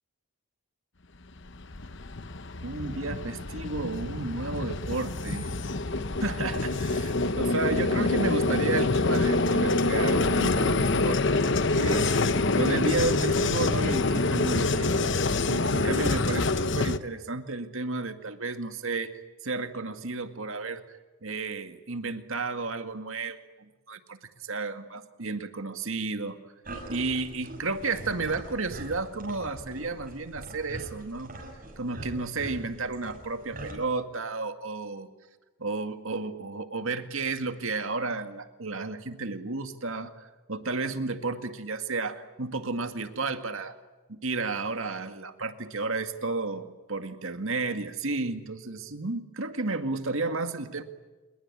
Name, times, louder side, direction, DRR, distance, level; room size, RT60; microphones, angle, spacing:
Vehicle, 1.4-17.0, left 3 dB, 55° left, 1.0 m, -26 dB
voice 1, 2.6-5.5 6.2-15.0 15.5-26.4 26.9-31.3 31.8-35.1 35.6-43.7 44.1-50.8, right 3 dB, 65° right, 8 dB, 2.1 m, -32 dB
sound 1, 26.6-33.7, right 1 dB, 40° right, 6.8 m, -42 dB
27.5 x 21.5 x 9.8 m, 1.2 s
head